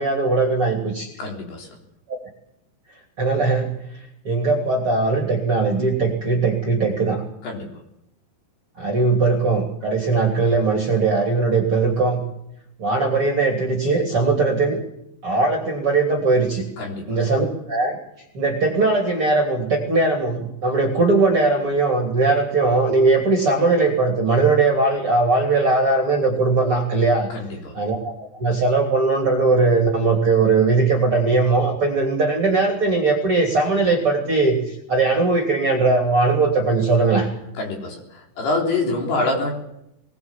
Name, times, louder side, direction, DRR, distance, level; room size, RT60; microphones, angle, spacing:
voice 1, 0.0-1.1 3.2-3.7 4.2-7.2 8.8-12.2 12.8-14.8 15.2-16.6 17.1-18.0 18.3-27.3 27.7-28.1 28.4-34.6 34.9-37.3, right 3 dB, 30° right, 0 dB, 3.0 m, -19 dB
voice 2, 1.2-1.7 7.4-7.7 16.8-17.0 27.3-27.7 37.6-38.0 38.4-39.5, left 2 dB, 55° left, 0 dB, 5.6 m, -25 dB
21.5 x 21.0 x 7.5 m, 0.80 s
omnidirectional pair, 5.9 m